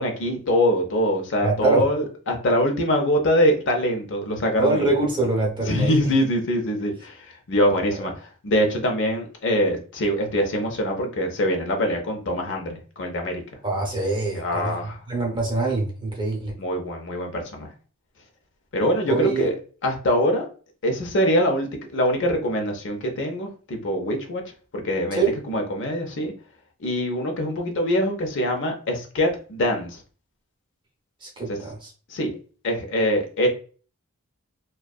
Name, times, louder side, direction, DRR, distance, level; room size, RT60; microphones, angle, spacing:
voice 1, 0.0-4.9 5.7-7.2 7.5-8.1 8.4-13.4 14.3-15.0 16.6-17.7 18.7-19.6 19.8-20.5 20.8-24.4 24.7-25.2 25.5-26.3 26.8-30.0 31.5-31.6 32.1-32.3 32.6-33.5, equal, 55° left, 3 dB, 0.6 m, -23 dB
voice 2, 1.4-1.8 4.6-6.0 13.6-16.5 19.1-19.5 25.1-25.4 31.2-31.9, right 3 dB, 20° right, -1 dB, 0.6 m, -24 dB
2.6 x 2.2 x 2.2 m, 0.39 s
head